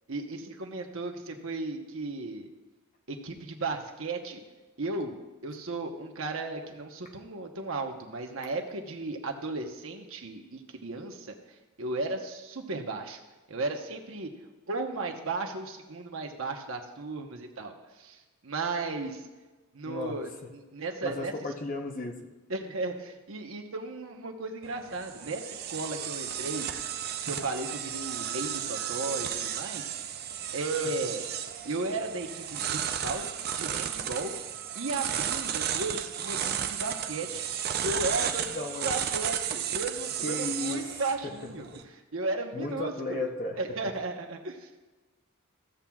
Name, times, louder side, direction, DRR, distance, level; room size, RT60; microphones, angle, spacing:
voice 1, 0.1-2.5 3.1-4.4 4.8-5.1 5.4-11.3 11.8-13.2 13.5-14.3 14.7-19.3 19.7-21.3 22.5-26.7 27.3-29.9 30.5-31.3 31.6-33.3 33.5-34.3 34.7-37.4 37.8-38.5 38.8-41.7 42.1-43.3 43.6-44.8, right 3 dB, 60° right, 3 dB, 1.0 m, -35 dB
voice 2, 19.8-20.3 21.0-22.2 38.5-38.9 40.2-40.9 41.2-41.3 41.7-41.8 42.5-43.6, left 2 dB, 35° left, 2 dB, 0.8 m, -34 dB
sound 1, 24.6-41.8, right 9 dB, 45° right, 0.5 m, -34 dB
15.5 x 7.3 x 2.4 m, 1.2 s
head